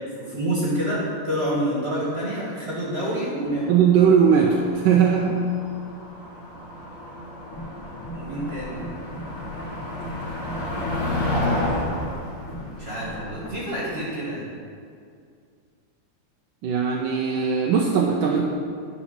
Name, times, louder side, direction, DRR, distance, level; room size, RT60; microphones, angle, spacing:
voice 1, 0.2-3.8 8.1-8.8 12.8-14.5, right 1 dB, 35° right, -6 dB, 1.7 m, -27 dB
Motor vehicle (road), 3.5-13.9, left 1 dB, 65° left, 2.4 m, -31 dB
voice 2, 3.7-5.4 16.6-18.4, right 7 dB, 85° right, 0 dB, 1.4 m, -19 dB
sound 1, 7.5-13.5, equal, 15° left, 0.5 m, -38 dB
9.9 x 4.1 x 5.7 m, 2.2 s
omnidirectional pair, 2.1 m